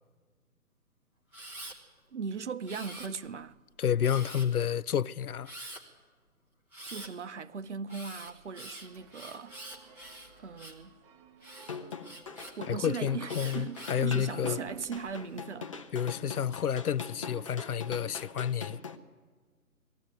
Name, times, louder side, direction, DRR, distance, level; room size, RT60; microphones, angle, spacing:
Camera, 1.3-1.8 2.7-3.4 4.0-4.6 5.4-5.8 6.7-7.1 7.9-10.9 11.4-12.5 13.3-14.0 14.7-15.2, right 1 dB, 5° right, 1.0 m, -46 dB
voice 1, 2.1-3.6 6.9-9.6 10.4-10.9 12.6-15.7, right 5 dB, 50° right, 0.8 m, -38 dB
voice 2, 3.8-5.5 12.7-14.6 15.9-18.8, left 8 dB, 75° left, 0.5 m, -30 dB
sound 1, 8.6-14.1, right 5 dB, 20° right, 1.2 m, -58 dB
sound 2, 11.6-19.0, left 5 dB, 20° left, 0.7 m, -42 dB
21.0 x 15.0 x 9.1 m
figure-of-eight pair, 140°, 45 cm